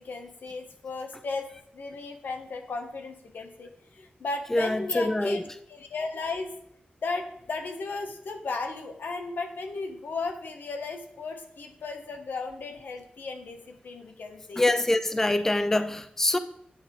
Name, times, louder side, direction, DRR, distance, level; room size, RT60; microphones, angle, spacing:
voice 1, 0.0-5.4 5.7-6.5 7.0-14.6, left 3 dB, 85° left, 0.9 m, -35 dB
voice 2, 4.5-5.4 14.6-16.4, left 1 dB, 15° left, 0.4 m, -25 dB
9.0 x 4.8 x 3.5 m
wide cardioid pair, 105°, 3 cm